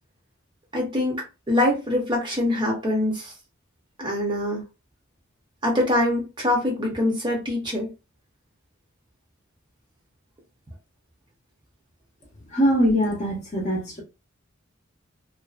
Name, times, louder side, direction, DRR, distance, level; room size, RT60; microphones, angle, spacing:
voice 1, 0.7-3.3 4.0-4.6 5.6-7.9, left 1 dB, 20° right, 0.6 m, -24 dB
voice 2, 12.5-14.0, equal, 35° left, 0.7 m, -22 dB
2.4 x 2.2 x 2.4 m
head